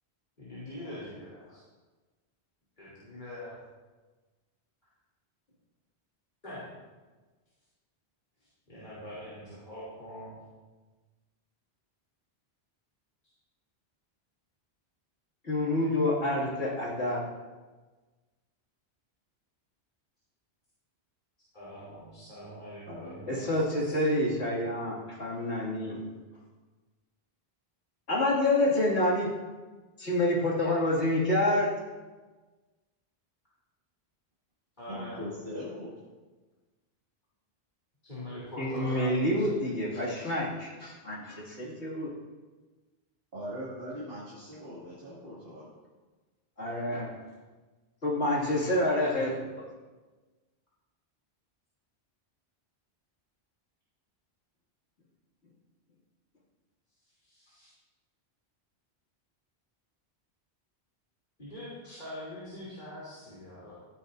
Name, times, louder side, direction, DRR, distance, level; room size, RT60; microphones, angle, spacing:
voice 1, 0.4-1.6 2.8-3.6 6.4-6.7 8.7-10.4 21.5-24.0 26.3-26.4 34.8-35.3 38.0-39.5 57.2-57.7 61.4-63.7, left 1 dB, 45° left, -10 dB, 3.3 m, -43 dB
voice 2, 15.4-17.2 23.3-26.0 28.1-29.3 30.0-31.7 38.6-42.1 46.6-47.1 48.0-49.7, left 1 dB, 85° left, -5 dB, 2.8 m, -28 dB
voice 3, 22.9-23.4 34.9-35.9 43.3-45.7, equal, 55° right, -9 dB, 2.7 m, -40 dB
15.0 x 9.9 x 2.7 m, 1.3 s
omnidirectional pair, 1.1 m